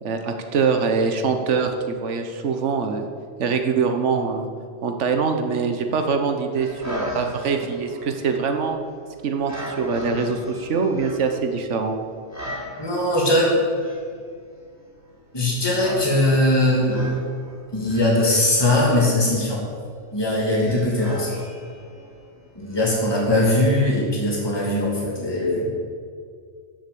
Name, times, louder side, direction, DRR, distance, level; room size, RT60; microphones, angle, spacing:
voice 1, 0.0-3.1 3.4-4.5 4.8-8.8 9.2-11.9, right 5 dB, 65° right, 5 dB, 1.4 m, -23 dB
sound 1, 6.5-24.2, equal, 10° right, 4.4 m, -38 dB
voice 2, 12.8-13.5 15.3-17.2 17.7-19.6 20.1-21.3 22.5-25.7, left 1 dB, 20° left, -4 dB, 2.8 m, -20 dB
14.0 x 7.9 x 7.0 m, 2.1 s
omnidirectional pair, 1.3 m